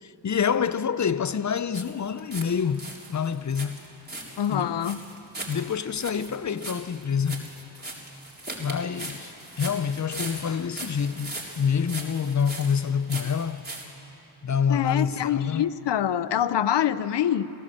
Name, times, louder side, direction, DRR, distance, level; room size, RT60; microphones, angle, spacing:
voice 1, 0.0-3.8 4.5-4.8 5.5-7.5 8.6-9.3 9.6-13.7 14.4-15.7, left 7 dB, 40° left, 0.7 m, -27 dB
sound 1, 1.7-2.5 2.7-13.8, right 2 dB, 20° right, 4.0 m, -39 dB
voice 2, 4.4-5.0 14.7-17.5, left 10 dB, 75° left, 0.8 m, -25 dB
24.0 x 16.0 x 7.7 m
cardioid pair, 55°, 43 cm